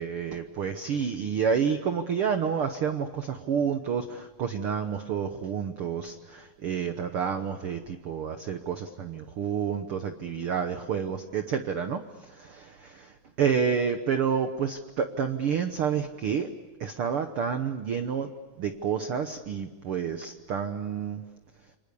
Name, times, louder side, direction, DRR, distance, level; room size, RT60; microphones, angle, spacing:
voice 1, 0.0-16.5 16.8-18.3 18.6-21.2, right 7 dB, 85° right, 8 dB, 1.2 m, -29 dB
28.5 x 25.5 x 6.9 m, 1.3 s
omnidirectional pair, 4.1 m